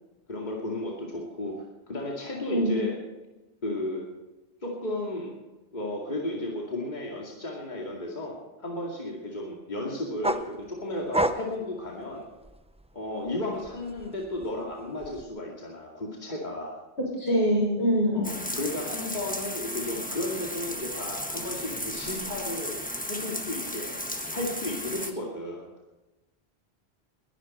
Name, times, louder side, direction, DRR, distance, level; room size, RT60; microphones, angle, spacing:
voice 1, 0.3-3.0 3.6-4.0 4.6-5.3 5.7-12.3 12.9-16.8 18.1-24.0 24.3-25.7, left 1 dB, 45° left, -2 dB, 2.5 m, -34 dB
sound 1, 10.2-12.9 13.3-15.2, right 1 dB, 5° right, 0.5 m, -31 dB
voice 2, 17.0-18.3, equal, 80° left, -2 dB, 6.5 m, -24 dB
sound 2, 18.2-25.1, left 1 dB, 10° left, 1.2 m, -35 dB
21.0 x 12.0 x 4.4 m, 1.1 s
omnidirectional pair, 1.1 m